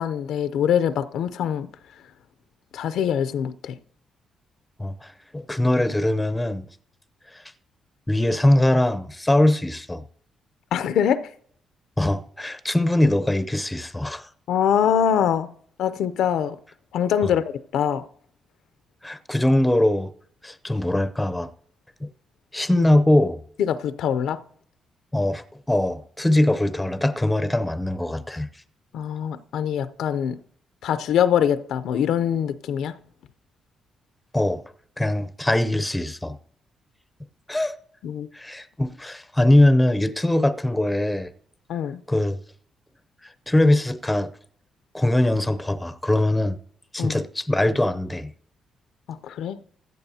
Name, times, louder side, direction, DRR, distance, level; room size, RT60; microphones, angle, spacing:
voice 1, 0.0-1.7 2.7-3.8 10.7-11.3 14.5-15.5 15.8-16.6 16.9-18.0 22.8-22.9 23.6-24.4 28.9-30.4 30.8-32.9 38.0-38.3 41.7-42.0 47.0-47.2 49.1-49.6, left 9 dB, 80° left, 0.5 m, -23 dB
voice 2, 4.8-6.7 7.3-7.4 8.1-10.1 12.0-14.3 19.0-20.1 20.4-21.5 22.0-22.1 22.5-23.4 25.1-28.5 34.3-34.6 35.0-36.4 37.5-37.7 38.3-41.3 42.1-42.4 43.2-44.3 44.9-46.6 46.9-48.3, left 1 dB, 10° left, 0.5 m, -22 dB
16.0 x 11.0 x 2.8 m
cardioid pair, 110°, 0 cm